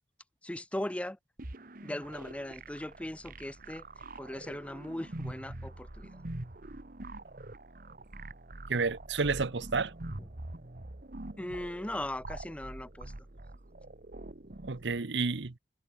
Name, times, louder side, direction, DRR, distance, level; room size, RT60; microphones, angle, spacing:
voice 1, 0.4-1.2 1.8-3.8 4.2-6.1 11.4-13.1, left 1 dB, 5° left, 0.5 m, -38 dB
sound 1, 1.4-15.0, right 2 dB, 50° right, 1.4 m, -45 dB
voice 2, 8.7-9.9 14.6-15.6, right 4 dB, 75° right, 0.9 m, -30 dB
head